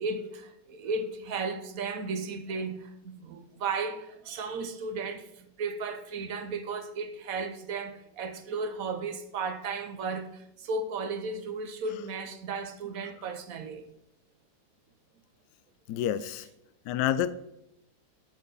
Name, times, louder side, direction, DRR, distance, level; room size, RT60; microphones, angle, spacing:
voice 1, 0.0-13.9, right 4 dB, 55° right, 1.1 m, -35 dB
voice 2, 15.9-16.5 16.9-17.3, left 11 dB, 75° left, 1.0 m, -28 dB
10.5 x 8.0 x 4.0 m
omnidirectional pair, 2.1 m